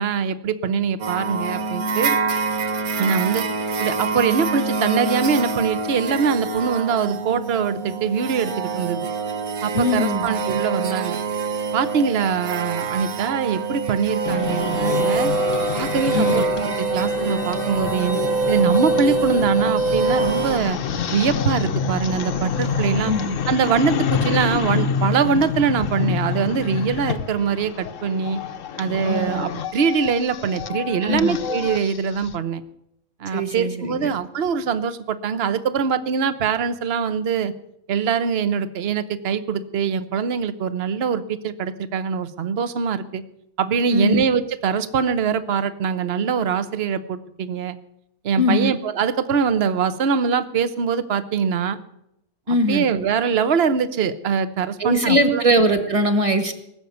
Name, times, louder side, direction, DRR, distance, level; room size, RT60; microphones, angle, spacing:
voice 1, 0.0-2.2 3.0-3.4 3.8-9.1 9.6-11.2 11.7-15.3 15.7-18.2 18.5-20.8 21.1-23.1 23.5-28.4 28.8-32.6 33.2-37.5 37.9-43.2 43.6-47.8 48.2-51.8 52.5-55.4, right 6 dB, 50° right, 12 dB, 1.1 m, -23 dB
sound 1, 1.0-20.6, right 4 dB, 75° right, 1.6 m, -25 dB
voice 2, 9.7-10.4 16.1-16.4 23.0-23.4 29.0-29.4 31.0-31.4 33.3-34.1 43.9-44.2 48.4-48.7 52.5-52.9 54.8-56.5, equal, 25° right, 7 dB, 1.7 m, -21 dB
sound 2, 14.2-32.3, left 7 dB, 60° left, 1.2 m, -27 dB
20.0 x 7.0 x 9.4 m, 0.78 s
omnidirectional pair, 1.5 m